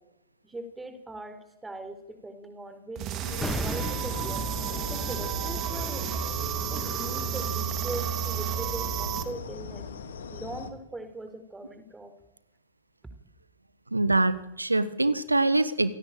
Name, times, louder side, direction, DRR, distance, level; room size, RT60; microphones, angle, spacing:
voice 1, 0.4-4.5 4.9-6.2 6.7-9.9 10.3-12.1, right 2 dB, 10° right, 9 dB, 4.0 m, -40 dB
sound 1, 3.0-9.2, right 10 dB, 35° right, 2.9 m, -32 dB
sound 2, 3.2-10.7, left 5 dB, 65° left, 2.6 m, -39 dB
sound 3, 3.4-8.4 8.7-8.8, left 2 dB, 5° left, 1.2 m, -39 dB
voice 2, 13.9-15.9, right 2 dB, 85° right, 14 dB, 1.4 m, -24 dB
27.5 x 17.5 x 8.9 m, 0.96 s
figure-of-eight pair, 90°, 0 cm